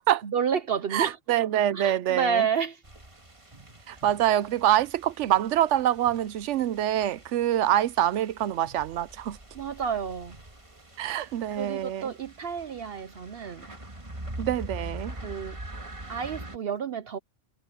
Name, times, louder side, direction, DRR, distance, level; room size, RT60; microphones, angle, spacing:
voice 1, 0.2-1.2 1.7-2.8 9.5-10.4 11.1-11.2 11.5-13.7 15.2-15.6 16.1-17.2, right 7 dB, 60° right, 0.9 m, -30 dB
voice 2, 0.9-2.5 3.9-9.4 11.0-12.1 14.4-15.1, right 12 dB, 90° right, 0.9 m, -25 dB
sound 1, 2.8-16.6, right 1 dB, 25° right, 2.0 m, -44 dB
omnidirectional pair, 1.2 m